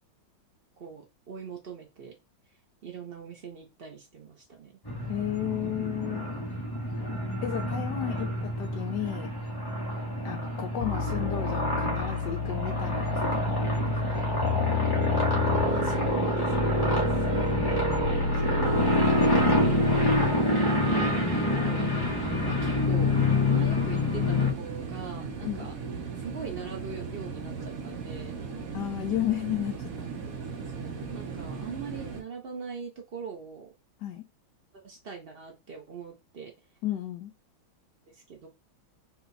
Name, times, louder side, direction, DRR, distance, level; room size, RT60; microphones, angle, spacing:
voice 1, 0.8-2.1 2.8-4.8 15.6-17.6 18.3-19.9 22.4-25.7 26.2-28.4 30.8-33.7 34.7-36.5 38.1-38.5, right 5 dB, 80° right, 0.5 m, -41 dB
sound 1, 4.8-24.5, left 1 dB, 30° left, 0.4 m, -27 dB
voice 2, 5.1-6.3 7.4-9.3 10.2-14.3 25.4-25.7 28.7-30.1 34.0-34.2 36.8-37.3, left 12 dB, 70° left, 1.1 m, -33 dB
sound 2, 10.8-20.4, left 7 dB, 90° left, 1.4 m, -31 dB
sound 3, 18.6-32.2, right 5 dB, 55° right, 1.1 m, -37 dB
4.3 x 2.3 x 4.0 m
omnidirectional pair, 2.2 m